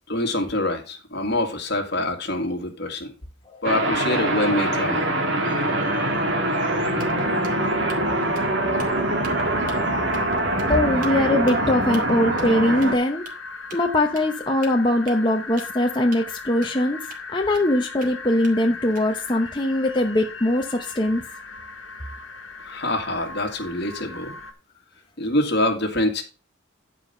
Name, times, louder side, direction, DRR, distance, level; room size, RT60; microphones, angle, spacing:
voice 1, 0.1-3.1 3.6-5.1 22.6-24.3 25.2-26.2, left 1 dB, 55° left, 2.0 m, -25 dB
sound 1, 3.6-13.0, right 1 dB, 60° right, 1.8 m, -23 dB
voice 2, 5.4-6.1 9.8-10.0 10.7-13.2 13.7-17.0 17.3-21.2, left 1 dB, 25° left, 0.9 m, -22 dB
sound 2, 6.6-6.7 7.0-8.1 8.3-8.5 8.8-9.3 9.7-9.9 10.1-10.2 10.6-10.7 11.0-11.1 11.5-11.6 11.9-12.0 12.4-12.5 12.8-12.9 13.2-13.3 13.7-13.8 14.1-14.3 14.6-15.8 16.1-16.2 16.6-16.7 17.1-17.2 17.5-18.1 18.4-19.2, right 4 dB, 40° right, 2.2 m, -43 dB
sound 3, 10.8-24.5, left 4 dB, 80° left, 1.5 m, -38 dB
10.5 x 5.0 x 5.4 m
head